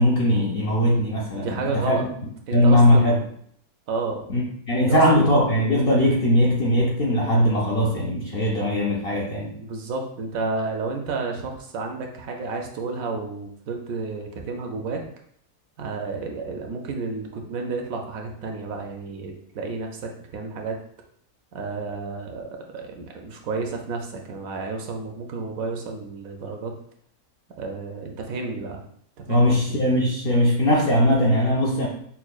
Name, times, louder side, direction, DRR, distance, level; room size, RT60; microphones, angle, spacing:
voice 1, 0.0-2.1 2.5-3.2 4.3-9.6 29.3-31.9, left 1 dB, 60° left, -3 dB, 0.6 m, -20 dB
voice 2, 1.3-2.0 2.5-3.3 3.9-4.2 4.8-5.2 9.6-15.1 15.8-20.8 21.5-26.7 27.6-28.8 29.2-29.6, right 3 dB, 75° right, 2 dB, 1.0 m, -31 dB
5.7 x 2.1 x 2.3 m, 0.66 s
omnidirectional pair, 1.6 m